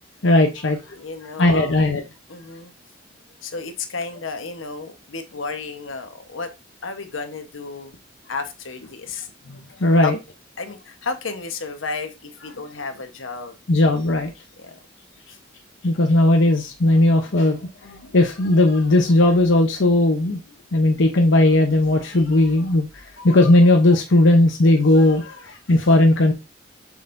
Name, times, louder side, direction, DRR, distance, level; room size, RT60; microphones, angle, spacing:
voice 1, 0.2-0.8 1.4-2.0 9.8-10.2 13.7-14.3 15.8-17.6 17.8-20.4 20.7-22.9 23.2-26.3, left 1 dB, 70° left, 0.8 m, -17 dB
voice 2, 0.9-1.8 2.3-2.7 3.4-6.5 6.8-8.0 8.3-9.3 10.0-10.1 10.6-13.5 14.6-14.8, left 4 dB, 90° left, 1.1 m, -32 dB
6.9 x 6.3 x 2.6 m
head